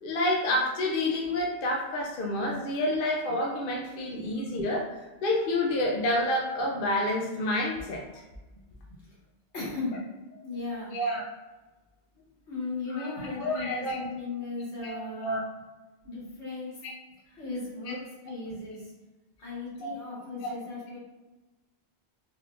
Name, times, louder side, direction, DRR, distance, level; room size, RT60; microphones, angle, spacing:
voice 1, 0.0-4.9 5.2-8.2 10.9-11.2 12.9-14.1 14.8-15.4 19.8-19.9 20.4-20.5, left 1 dB, 60° left, -1 dB, 0.7 m, -29 dB
voice 2, 9.5-10.0 10.4-10.9 12.5-15.4 16.0-16.8 17.4-18.8 19.4-21.0, left 3 dB, 80° left, -7 dB, 1.8 m, -36 dB
3.6 x 2.3 x 3.5 m, 1.1 s
omnidirectional pair, 1.1 m